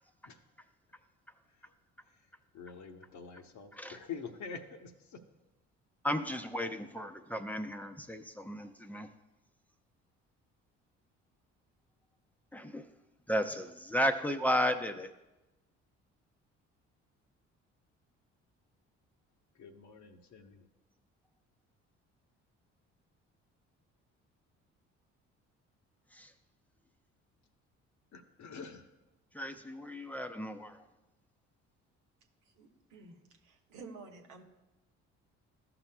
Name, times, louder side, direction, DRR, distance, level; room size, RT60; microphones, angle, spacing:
voice 1, 2.0-5.2 19.5-20.7 28.1-28.9, left 6 dB, 55° left, 6 dB, 0.9 m, -47 dB
voice 2, 6.0-9.1 12.5-12.9 13.3-15.1 26.1-26.3 29.3-30.9, equal, 5° left, 6 dB, 0.7 m, -34 dB
voice 3, 32.6-33.2 33.4-34.4, right 4 dB, 75° right, 3 dB, 1.2 m, -51 dB
14.0 x 5.9 x 2.3 m, 1.0 s
hypercardioid pair, 55°, 35 cm